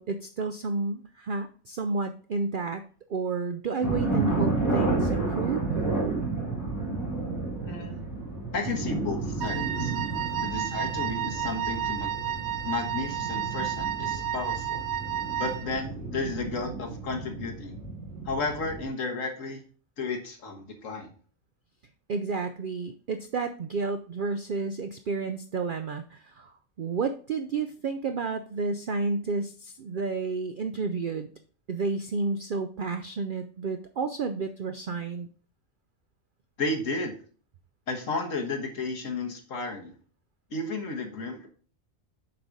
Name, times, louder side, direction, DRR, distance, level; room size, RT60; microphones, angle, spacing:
voice 1, 0.0-2.8 3.1-5.7 22.1-31.3 31.7-35.3, right 4 dB, 65° right, 8 dB, 0.5 m, -31 dB
sound 1, 3.8-18.9, right 3 dB, 10° left, 2.6 m, -31 dB
voice 2, 7.6-8.0 8.5-9.9 10.4-12.2 12.6-14.8 15.4-17.8 18.2-19.6 20.0-21.1 36.6-37.1 37.9-39.9 40.5-41.5, left 3 dB, 65° left, 2 dB, 1.7 m, -33 dB
Wind instrument woodwind instrument, 9.4-15.8, right 11 dB, 80° right, 1.0 m, -32 dB
7.5 x 4.9 x 4.0 m, 0.42 s
omnidirectional pair, 1.4 m